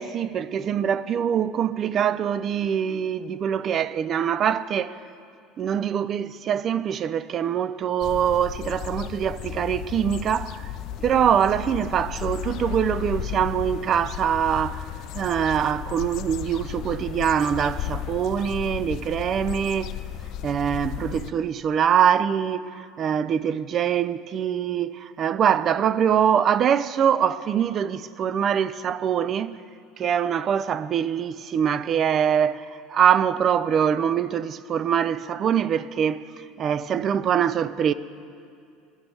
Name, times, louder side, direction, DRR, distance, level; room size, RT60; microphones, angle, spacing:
voice 1, 0.0-5.0 5.6-10.7 11.0-14.9 15.1-19.9 20.4-29.6 30.0-37.9, right 8 dB, 45° right, 0.4 m, -24 dB
sound 1, 8.0-21.3, left 11 dB, 55° left, 0.4 m, -34 dB
12.5 x 6.8 x 9.1 m
hypercardioid pair, 70°, 0 cm